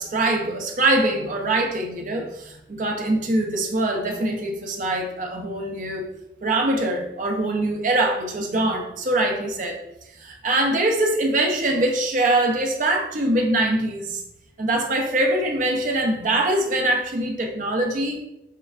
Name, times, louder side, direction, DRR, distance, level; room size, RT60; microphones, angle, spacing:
voice 1, 0.0-6.0 6.4-9.8 10.2-14.2 14.6-18.2, right 1 dB, 45° right, 1 dB, 0.6 m, -23 dB
6.4 x 2.2 x 2.4 m, 0.88 s
head